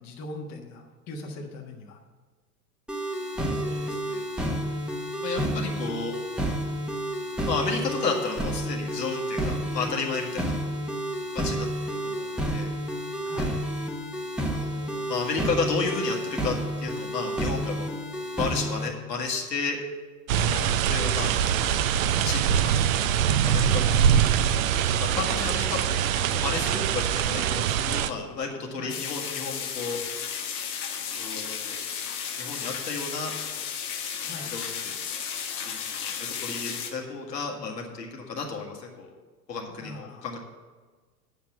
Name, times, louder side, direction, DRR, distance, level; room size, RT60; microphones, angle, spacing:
voice 1, 0.0-2.0 13.2-13.6 20.4-20.8 28.8-29.0 34.2-34.5 39.7-40.3, left 2 dB, 35° left, 1 dB, 1.5 m, -40 dB
sound 1, 2.9-18.9, right 1 dB, ahead, 1.1 m, -30 dB
voice 2, 3.5-4.2 5.2-6.1 7.4-10.6 11.3-12.7 14.6-17.9 18.3-19.8 20.9-21.3 22.2-23.0 23.4-23.8 25.0-25.8 26.3-30.0 31.2-31.8 32.4-33.3 34.4-34.9 35.7-39.1 39.5-40.4, left 4 dB, 80° left, 0 dB, 2.0 m, -32 dB
sound 2, 20.3-28.1, right 9 dB, 55° right, 0.7 m, -23 dB
sound 3, 28.9-36.9, left 7 dB, 65° left, 1.5 m, -34 dB
9.6 x 5.9 x 7.4 m, 1.4 s
figure-of-eight pair, 90°, 49 cm